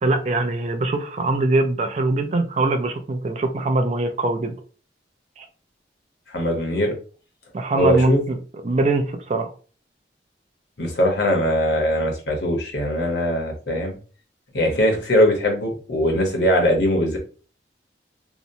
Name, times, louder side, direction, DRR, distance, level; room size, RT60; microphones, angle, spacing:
voice 1, 0.0-4.5 5.4-5.5 7.5-8.4 8.6-9.5, right 2 dB, 40° right, 6 dB, 0.4 m, -22 dB
voice 2, 6.3-6.9 7.8-8.2 10.8-14.0 14.5-17.2, equal, 75° left, 1 dB, 0.9 m, -21 dB
2.8 x 2.1 x 2.6 m, 0.38 s
head